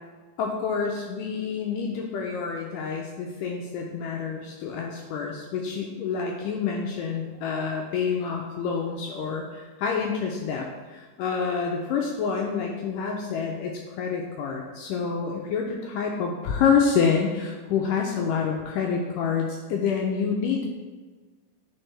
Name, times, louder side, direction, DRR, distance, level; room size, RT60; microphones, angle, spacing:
voice 1, 0.4-20.6, left 6 dB, 80° left, 0 dB, 1.9 m, -27 dB
10.0 x 4.6 x 3.3 m, 1.3 s
omnidirectional pair, 4.3 m